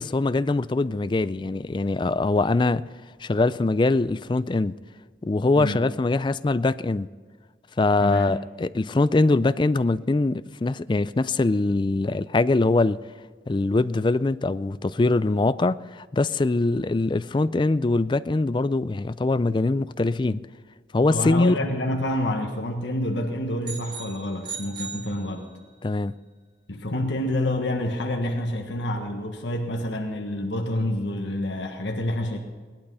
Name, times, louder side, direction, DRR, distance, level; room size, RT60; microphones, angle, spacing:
voice 1, 0.0-2.9 3.2-4.7 5.2-7.1 7.8-13.0 13.5-20.4 20.9-21.6 25.8-26.1, left 2 dB, 25° left, 0.4 m, -23 dB
voice 2, 8.0-8.3 21.1-25.5 26.7-32.4, left 1 dB, 75° left, 1.5 m, -28 dB
sound 1, 23.6-25.8, right 6 dB, 25° right, 1.6 m, -38 dB
18.5 x 12.0 x 5.5 m
head